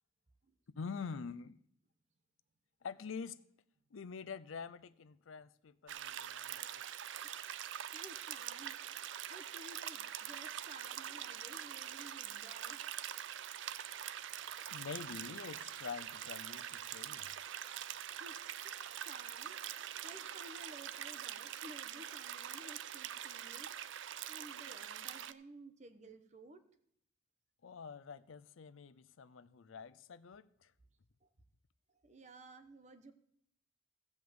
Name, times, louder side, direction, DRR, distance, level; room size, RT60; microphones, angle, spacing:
voice 1, 0.8-1.6 2.8-3.4 3.9-6.8 13.6-13.7 14.7-17.3 27.6-30.7, left 5 dB, 75° left, 0.5 m, -46 dB
sound 1, 5.9-25.3, right 10 dB, 65° right, 0.4 m, -44 dB
voice 2, 7.9-8.8 9.3-12.8 18.1-18.4 18.6-19.6 20.0-23.8 24.3-26.6 31.2-31.3 32.0-33.1, right 1 dB, 35° right, 0.9 m, -55 dB
14.5 x 5.2 x 7.8 m
head